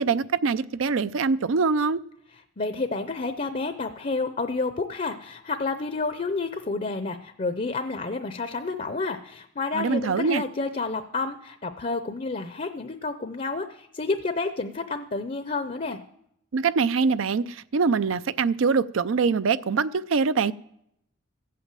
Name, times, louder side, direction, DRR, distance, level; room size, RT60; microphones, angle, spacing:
voice 1, 0.0-2.0 9.7-10.4 16.5-20.5, right 5 dB, 75° right, 0.5 m, -23 dB
voice 2, 2.6-16.0, left 3 dB, 35° left, 0.6 m, -30 dB
15.5 x 8.4 x 7.4 m
head